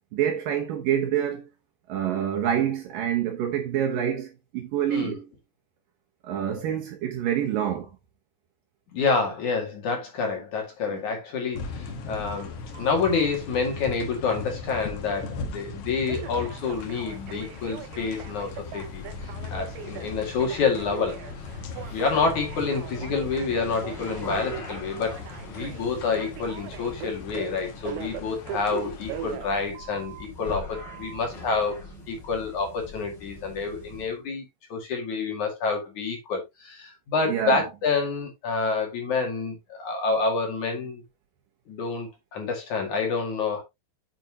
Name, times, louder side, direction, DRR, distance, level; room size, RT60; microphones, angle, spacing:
voice 1, 0.1-1.5 1.9-5.3 6.2-7.9 10.9-11.0 37.3-37.6, right 10 dB, 65° right, 2.5 m, -27 dB
voice 2, 8.9-19.0 19.5-21.2 21.7-25.2 25.5-31.8 32.1-34.4 34.7-41.0 41.7-43.6, left 4 dB, 50° left, 3.2 m, -28 dB
sound 1, 11.5-29.4, left 4 dB, 85° left, 1.3 m, -39 dB
Telephone, 12.7-13.3 16.1-30.3 30.7-31.3, right 10 dB, 90° right, 3.0 m, -41 dB
sound 2, 16.4-34.2, left 2 dB, 25° left, 3.8 m, -43 dB
8.8 x 7.7 x 2.8 m
omnidirectional pair, 4.9 m